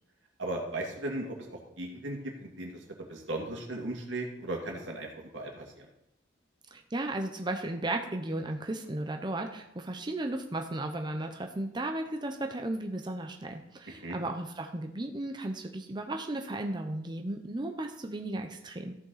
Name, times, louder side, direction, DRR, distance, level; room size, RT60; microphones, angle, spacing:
voice 1, 0.4-5.9 14.0-14.2, right 1 dB, 85° right, 1 dB, 2.2 m, -37 dB
voice 2, 6.7-19.0, right 2 dB, 25° right, 4 dB, 0.7 m, -35 dB
14.0 x 6.5 x 4.1 m, 0.82 s
head